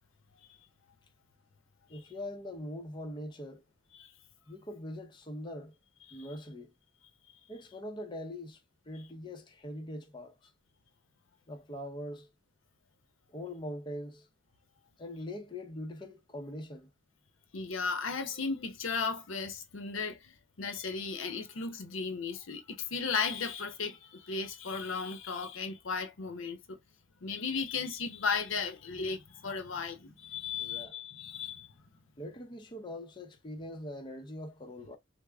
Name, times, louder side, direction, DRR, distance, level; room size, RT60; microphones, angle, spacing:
voice 1, 1.9-3.6 4.5-5.7 6.1-6.7 7.5-8.6 8.9-10.4 11.5-12.3 13.3-14.3 15.0-16.9 30.6-31.0 32.2-35.0, left 1 dB, 25° left, 0.5 m, -42 dB
voice 2, 17.5-26.8 27.2-31.7, left 5 dB, 80° left, 0.7 m, -35 dB
3.4 x 2.0 x 3.4 m
head